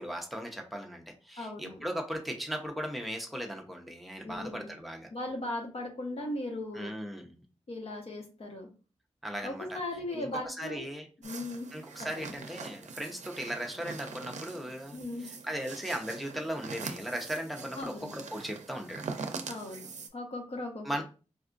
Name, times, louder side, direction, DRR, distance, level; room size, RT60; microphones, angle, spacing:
voice 1, 0.0-5.1 6.7-7.4 9.2-9.8 10.1-11.1 11.7-15.0 15.4-19.0 20.8-21.0, equal, ahead, 3 dB, 0.6 m, -37 dB
voice 2, 1.4-1.8 4.2-4.7 5.1-6.9 7.7-8.7 9.4-10.8 11.2-11.7 12.0-12.4 14.9-15.3 17.7-18.1 19.4-21.0, left 2 dB, 55° left, 1 dB, 1.0 m, -38 dB
sound 1, 11.2-20.1, right 4 dB, 80° right, 0.5 m, -43 dB
4.4 x 2.4 x 2.4 m, 0.34 s
wide cardioid pair, 115°, 12 cm